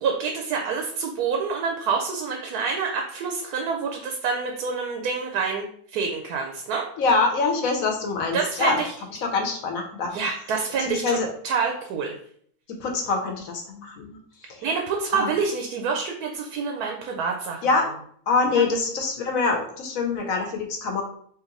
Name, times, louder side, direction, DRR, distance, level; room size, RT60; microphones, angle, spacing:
voice 1, 0.0-6.9 8.3-8.9 10.1-11.2 11.4-12.1 14.6-17.6 18.6-18.7, right 5 dB, 90° right, 2 dB, 1.1 m, -27 dB
voice 2, 7.0-8.8 9.2-10.2 10.9-11.3 12.8-14.2 14.5-14.6 15.1-15.3 17.6-17.9 18.3-21.0, left 4 dB, 70° left, 3 dB, 1.1 m, -24 dB
3.2 x 2.9 x 3.6 m, 0.62 s
omnidirectional pair, 1.6 m